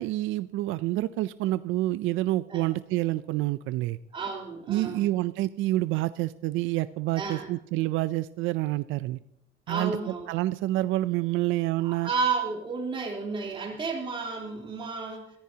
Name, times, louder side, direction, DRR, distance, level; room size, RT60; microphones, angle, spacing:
voice 1, 0.0-4.0 4.7-9.2 9.7-10.0 10.3-12.1, right 16 dB, 85° right, 15 dB, 0.5 m, -28 dB
voice 2, 4.1-5.1 7.2-7.5 9.7-10.3 11.8-15.3, right 4 dB, 25° right, -1 dB, 3.6 m, -32 dB
23.5 x 15.0 x 2.9 m, 0.80 s
cardioid pair, 165°, 20 cm